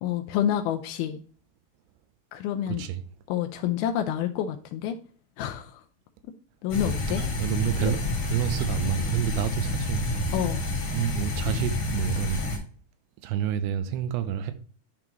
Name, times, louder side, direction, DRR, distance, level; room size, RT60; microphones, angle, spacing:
voice 1, 0.0-1.2 2.3-2.8 3.3-5.0 5.4-5.8 6.6-7.2 7.8-7.9 10.3-10.6, left 10 dB, 80° left, 2.4 m, -28 dB
sound 1, 6.7-12.6, left 2 dB, 45° left, 2.0 m, -29 dB
sound 2, 7.2-7.6 8.1-8.9 10.3-10.8 12.0-12.2, right 1 dB, 65° right, 3.1 m, -46 dB
voice 2, 7.4-10.3 10.9-12.4 13.2-14.5, right 10 dB, 85° right, 2.7 m, -29 dB
10.5 x 3.8 x 2.9 m
omnidirectional pair, 4.7 m